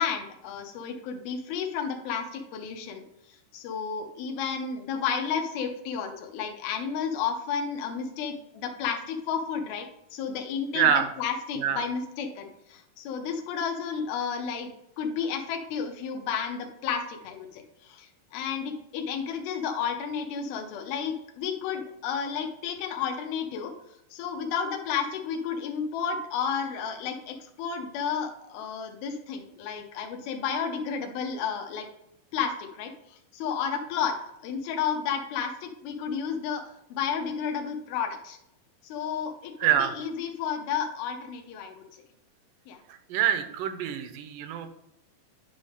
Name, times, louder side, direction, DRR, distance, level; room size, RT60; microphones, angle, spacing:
voice 1, 0.0-3.0 3.5-9.9 10.1-10.9 11.2-14.7 15.0-23.7 24.1-31.9 32.3-32.9 33.3-34.2 34.4-36.6 36.9-38.4 38.8-41.8 42.7-42.8, left 7 dB, 90° left, 3 dB, 2.8 m, -32 dB
voice 2, 10.7-11.1 11.6-11.8 39.6-39.9 42.9-44.7, right 9 dB, 75° right, 9 dB, 2.1 m, -25 dB
10.5 x 4.9 x 3.6 m, 0.80 s
omnidirectional pair, 4.2 m